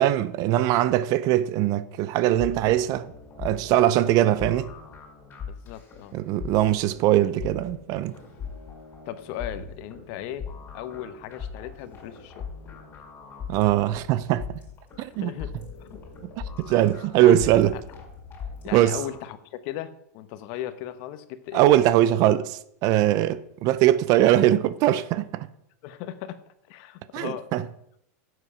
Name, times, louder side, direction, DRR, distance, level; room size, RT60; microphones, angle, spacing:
voice 1, 0.0-3.1 3.4-4.7 6.1-8.2 13.5-14.6 15.0-15.3 16.4-17.8 18.7-19.0 21.5-25.5 27.1-27.6, right 13 dB, 45° right, 0.6 m, -21 dB
sound 1, 2.3-19.2, left 6 dB, 25° left, 4.8 m, -40 dB
voice 2, 5.5-6.1 9.0-12.5 14.9-15.5 15.8-16.0 17.2-17.5 17.7-17.8 18.6-21.6 25.8-26.4 26.7-27.5, left 12 dB, 50° left, 1.1 m, -37 dB
11.0 x 8.0 x 5.7 m
supercardioid pair, 130°, 9 cm